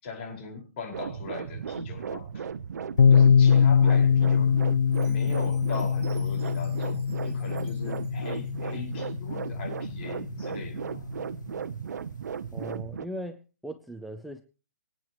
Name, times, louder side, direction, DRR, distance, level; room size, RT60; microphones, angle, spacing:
voice 1, 0.0-2.5 3.1-4.6 5.0-11.0, left 5 dB, 35° left, 5.2 m, -40 dB
sound 1, 0.9-13.0, right 7 dB, 70° right, 0.8 m, -36 dB
sound 2, 3.0-10.7, left 6 dB, 85° left, 1.0 m, -23 dB
Chime, 4.9-9.0, right 7 dB, 45° right, 6.4 m, -58 dB
voice 2, 12.5-14.4, right 1 dB, ahead, 0.6 m, -38 dB
25.5 x 9.1 x 3.1 m
hypercardioid pair, 155°, 10 cm